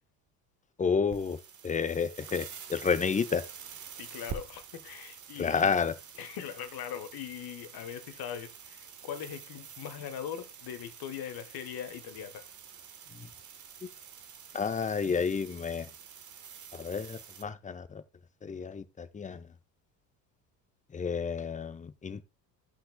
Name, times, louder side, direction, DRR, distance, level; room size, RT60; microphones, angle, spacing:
voice 1, 0.8-1.4 1.6-3.4 5.4-5.9 13.2-13.3 14.5-15.9 16.7-18.0 18.4-19.4 20.9-22.2, left 5 dB, 15° left, 0.7 m, -30 dB
sound 1, 1.0-17.4, right 7 dB, 35° right, 1.3 m, -48 dB
voice 2, 4.0-5.7 6.1-12.5, left 9 dB, 45° left, 1.3 m, -41 dB
16.0 x 5.8 x 2.2 m
hypercardioid pair, 65°, 49 cm